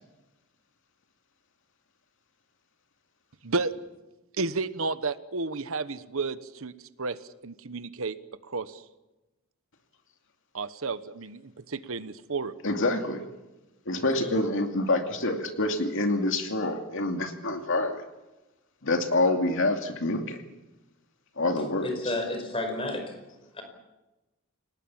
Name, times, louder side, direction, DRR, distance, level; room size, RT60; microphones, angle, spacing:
voice 1, 3.4-3.7 4.4-6.7 7.0-8.2 8.5-8.8 10.5-12.6, right 3 dB, 65° right, 14 dB, 1.1 m, -32 dB
voice 2, 12.6-13.2 13.9-18.0 18.8-20.4 21.4-21.9, left 2 dB, 60° left, 5 dB, 2.5 m, -26 dB
voice 3, 21.8-23.1 23.5-23.6, left 2 dB, 25° left, 6 dB, 5.1 m, -31 dB
29.0 x 19.0 x 7.3 m, 1.0 s
head